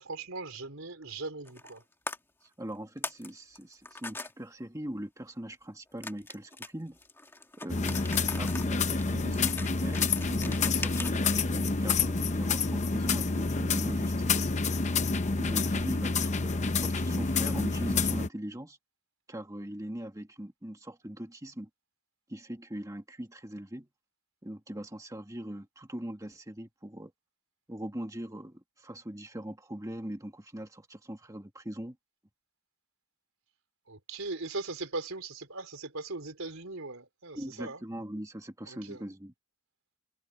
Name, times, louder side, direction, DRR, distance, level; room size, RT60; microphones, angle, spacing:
voice 1, 0.0-1.8 33.9-37.8 38.7-39.0, right 3 dB, 75° right, 3.6 m, -39 dB
sound 1, 1.5-1.8 2.1-2.2 2.7-3.3 3.5-4.3 6.0-11.4, left 3 dB, 10° left, 2.4 m, -40 dB
voice 2, 2.4-7.0 7.6-8.0 8.4-14.5 15.4-18.8 19.3-21.7 22.3-23.9 24.4-27.1 27.7-32.0 37.3-39.3, right 1 dB, 15° right, 1.8 m, -41 dB
sound 2, 7.7-18.3, left 4 dB, 35° left, 0.8 m, -28 dB
head